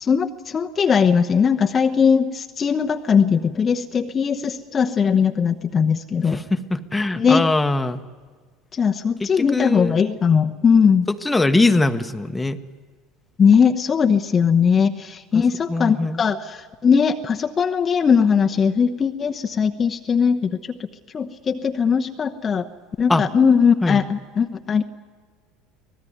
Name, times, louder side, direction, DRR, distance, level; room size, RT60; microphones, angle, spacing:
voice 1, 0.0-6.4 7.2-7.5 8.7-11.1 13.4-20.8 21.1-22.7 23.0-24.8, left 6 dB, 30° left, 5 dB, 1.0 m, -19 dB
voice 2, 6.3-8.0 9.2-9.9 11.1-12.6 15.7-16.2 23.1-23.3 23.8-24.0, left 2 dB, 10° left, 8 dB, 1.3 m, -21 dB
25.0 x 18.0 x 9.5 m, 1.5 s
figure-of-eight pair, 70°, 0 cm